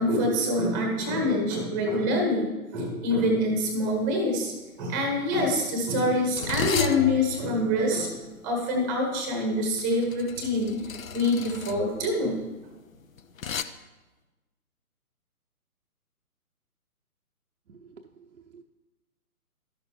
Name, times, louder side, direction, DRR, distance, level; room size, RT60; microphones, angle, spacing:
voice 1, 0.0-4.5 4.8-8.2 8.4-10.8 11.1-12.4, left 1 dB, 15° right, 2 dB, 0.9 m, -25 dB
sound 1, 3.6-3.8 4.0-4.4 5.1-13.6, left 7 dB, 65° left, 0.6 m, -35 dB
voice 2, 17.7-18.6, right 5 dB, 60° right, 3 dB, 0.7 m, -51 dB
12.0 x 6.5 x 3.1 m, 1.1 s
figure-of-eight pair, 135°, 45 cm